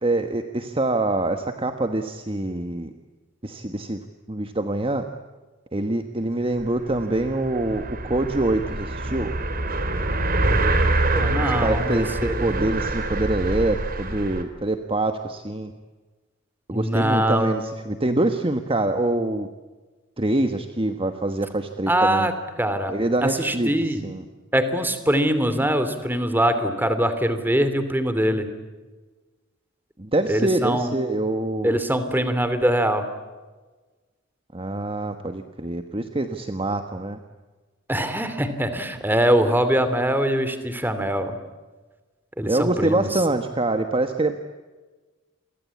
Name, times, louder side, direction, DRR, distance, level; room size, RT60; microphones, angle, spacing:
voice 1, 0.0-2.9 3.4-4.0 4.3-5.1 5.7-9.3 11.4-15.7 16.7-19.5 20.2-22.3 22.9-24.2 30.0-31.7 34.5-37.2 42.4-44.4, right 2 dB, 30° right, 7 dB, 1.4 m, -25 dB
sound 1, 6.6-6.7 6.9-14.4, right 2 dB, 50° right, 3.5 m, -25 dB
voice 2, 11.1-12.7 16.7-17.6 21.9-22.3 22.6-22.9 23.2-24.0 24.5-28.5 30.3-30.9 31.6-33.0 37.9-41.4 42.4-43.2, right 1 dB, 10° right, 10 dB, 2.9 m, -23 dB
29.5 x 24.0 x 8.5 m, 1.3 s
head